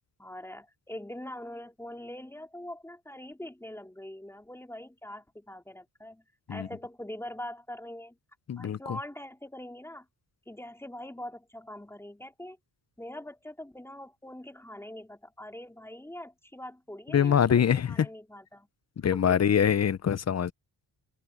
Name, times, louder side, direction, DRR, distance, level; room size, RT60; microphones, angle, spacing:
voice 1, 0.2-6.2 6.5-8.2 8.6-10.1 10.5-12.6 13.0-18.7 19.1-19.4, left 1 dB, 5° left, 4.0 m, -43 dB
voice 2, 8.5-9.0 17.1-18.1 19.0-20.5, left 8 dB, 35° left, 0.7 m, -24 dB
wide cardioid pair, 120°, 44 cm